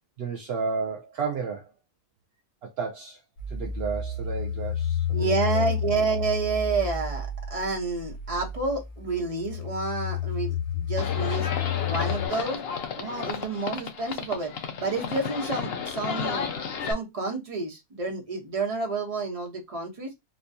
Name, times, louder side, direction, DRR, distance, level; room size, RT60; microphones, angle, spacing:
voice 1, 0.2-1.7 2.6-3.2 3.5-5.6, right 5 dB, 70° right, 0.6 m, -32 dB
sound 1, 3.4-12.3, left 7 dB, 80° left, 1.3 m, -31 dB
voice 2, 5.1-11.5 11.9-12.6 12.9-14.5 14.8-16.5 16.8-20.1, right 4 dB, 25° right, 0.9 m, -29 dB
Livestock farm animals working animals, 11.0-16.9, left 6 dB, 60° left, 0.6 m, -32 dB
4.2 x 2.3 x 2.7 m
omnidirectional pair, 1.6 m